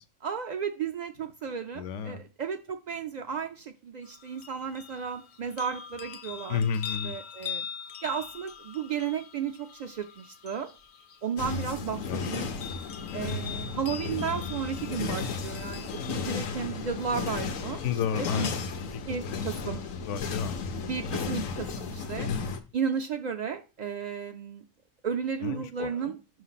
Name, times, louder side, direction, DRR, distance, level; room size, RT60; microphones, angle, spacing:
voice 1, 0.2-6.7 7.0-7.7 8.0-10.7 11.2-12.5 13.1-17.8 18.1-18.5 19.1-19.8 20.9-22.3 22.7-24.6 25.0-26.2, right 7 dB, 70° right, 4 dB, 0.4 m, -34 dB
voice 2, 1.8-2.2 6.5-7.1 12.0-12.5 17.8-18.5 18.8-19.0 19.3-19.8 20.0-20.5 22.2-22.4 25.4-26.1, left 7 dB, 70° left, 12 dB, 0.9 m, -32 dB
sound 1, 4.0-19.0 19.6-19.7, left 7 dB, 50° left, 0.6 m, -44 dB
sound 2, 11.4-22.6, left 5 dB, 90° left, 1.2 m, -34 dB
5.8 x 3.2 x 5.6 m, 0.32 s
omnidirectional pair, 1.3 m